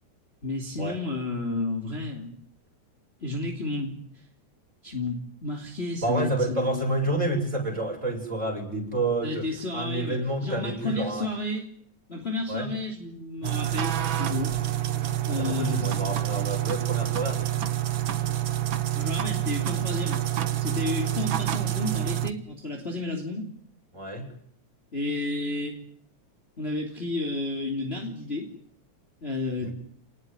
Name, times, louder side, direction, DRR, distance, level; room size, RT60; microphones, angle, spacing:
voice 1, 0.4-2.4 3.2-4.2 4.8-6.9 9.2-11.7 12.1-14.6 15.3-16.0 18.9-20.2 20.6-23.5 24.9-25.8 26.6-28.5 29.2-29.7, left 2 dB, 20° left, 3 dB, 3.1 m, -32 dB
voice 2, 6.0-9.5 9.7-11.3 12.5-12.7 15.0-17.6 23.9-24.3 29.6-29.7, right 2 dB, 25° right, 1 dB, 7.6 m, -29 dB
sound 1, 13.4-22.3, right 12 dB, 50° right, 1.8 m, -27 dB
28.0 x 20.0 x 9.8 m, 0.63 s
omnidirectional pair, 3.3 m